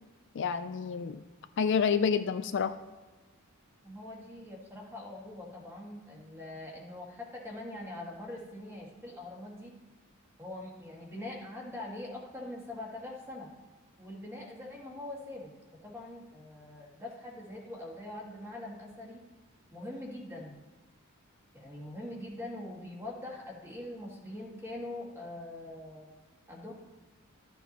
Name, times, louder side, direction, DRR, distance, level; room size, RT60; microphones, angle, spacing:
voice 1, 0.3-1.2 1.6-2.7, left 6 dB, 55° left, 10 dB, 0.4 m, -28 dB
voice 2, 3.8-9.7 10.4-13.5 14.0-19.2 19.7-20.6 21.5-26.1 26.5-26.7, left 1 dB, 10° right, -2 dB, 1.9 m, -43 dB
13.0 x 7.0 x 3.0 m, 1.3 s
head